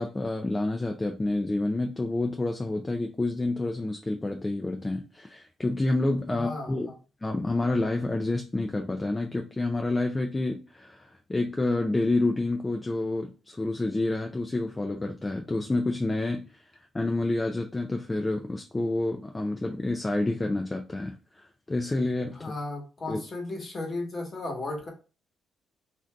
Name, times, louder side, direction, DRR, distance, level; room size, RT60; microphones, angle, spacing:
voice 1, 0.0-6.9 7.2-16.6 16.9-22.5 23.1-23.2, left 2 dB, 20° left, 3 dB, 0.4 m, -28 dB
voice 2, 6.3-6.9 22.4-24.9, left 2 dB, 35° left, 1 dB, 1.2 m, -35 dB
2.5 x 2.5 x 3.3 m, 0.33 s
cardioid pair, 90°, 0 cm